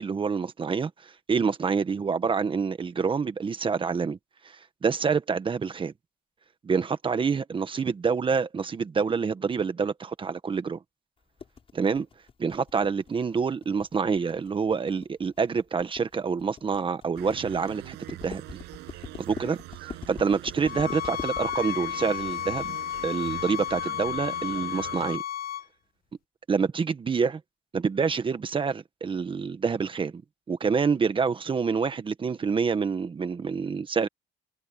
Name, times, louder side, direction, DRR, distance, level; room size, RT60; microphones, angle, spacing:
voice 1, 0.0-4.2 4.8-5.9 6.6-10.8 11.7-12.1 12.4-18.4 19.2-19.6 20.1-22.8 23.0-25.2 26.5-27.4 27.7-30.2 30.5-34.1, right 5 dB, 30° right, 1.5 m, -27 dB
sound 1, 11.4-22.9, left 6 dB, 35° left, 6.5 m, -44 dB
sound 2, 17.2-25.2, right 19 dB, 90° right, 7.7 m, -43 dB
sound 3, 20.6-25.6, left 11 dB, 60° left, 1.5 m, -33 dB
cardioid pair, 110°, 17 cm